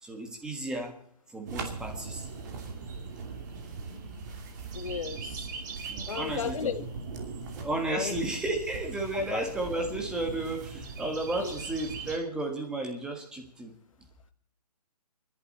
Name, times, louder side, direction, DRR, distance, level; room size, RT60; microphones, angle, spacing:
voice 1, 0.0-1.0 1.3-2.3 5.9-6.9 7.6-13.7, right 2 dB, 5° right, 3 dB, 1.5 m, -33 dB
sound 1, 1.5-12.2, right 4 dB, 25° right, 2.5 m, -40 dB
voice 2, 4.7-5.5 6.1-6.8 7.9-8.1 9.1-9.4 11.4-11.5, left 7 dB, 50° left, 11 dB, 1.4 m, -34 dB
29.0 x 11.0 x 4.2 m, 0.64 s
hypercardioid pair, 170°, 21 cm